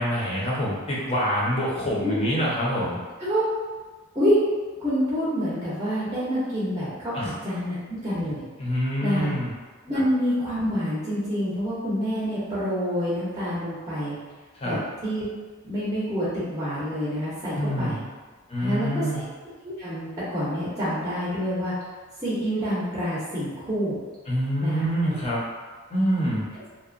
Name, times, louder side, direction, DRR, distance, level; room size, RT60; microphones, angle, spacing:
voice 1, 0.0-3.0 7.1-7.3 8.6-9.5 14.6-14.8 17.5-18.0 18.5-19.2 24.3-25.4 25.9-26.4, equal, 30° left, -6 dB, 0.6 m, -26 dB
voice 2, 2.0-2.4 3.2-3.4 4.1-4.4 4.8-8.4 9.0-9.3 9.8-14.2 14.6-15.2 15.6-18.0 18.6-19.0 19.6-21.7 22.2-24.0 24.6-24.8 25.1-25.2, equal, 20° right, -10 dB, 0.6 m, -27 dB
2.7 x 2.1 x 2.5 m, 1.4 s
head